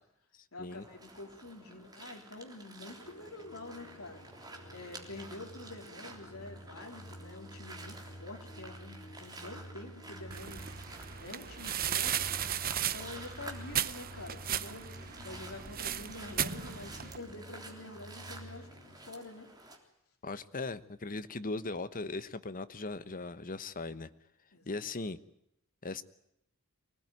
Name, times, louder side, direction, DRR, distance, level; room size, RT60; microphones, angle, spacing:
voice 1, 0.5-4.2 4.7-10.7 11.2-12.3 12.8-14.8 15.2-18.7 19.1-19.5 24.5-24.9, left 2 dB, 75° left, 3 dB, 3.8 m, -47 dB
sound 1, 0.7-19.8, right 2 dB, 20° right, 3.5 m, -51 dB
sound 2, 2.9-19.0, equal, 55° left, 4.1 m, -51 dB
sound 3, 10.3-17.2, right 10 dB, 45° right, 0.9 m, -36 dB
voice 2, 20.2-24.1 24.7-25.2 25.8-26.0, left 3 dB, 40° left, 13 dB, 1.1 m, -38 dB
24.5 x 18.5 x 9.3 m, 0.80 s
head